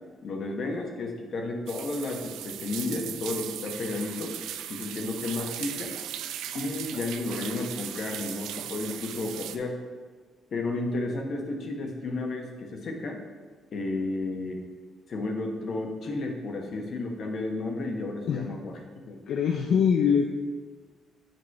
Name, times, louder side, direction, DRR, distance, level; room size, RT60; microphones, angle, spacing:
voice 1, 0.2-4.3 4.7-5.9 6.5-9.8 10.5-13.2 13.7-14.6 15.1-18.7 19.1-19.2, left 2 dB, 55° left, 2 dB, 1.2 m, -32 dB
sound 1, 1.7-9.6, right 11 dB, 90° right, 0.4 m, -38 dB
voice 2, 19.3-20.3, left 7 dB, 75° left, 3 dB, 0.5 m, -23 dB
8.9 x 3.1 x 5.9 m, 1.5 s
cardioid pair, 90°, 0 cm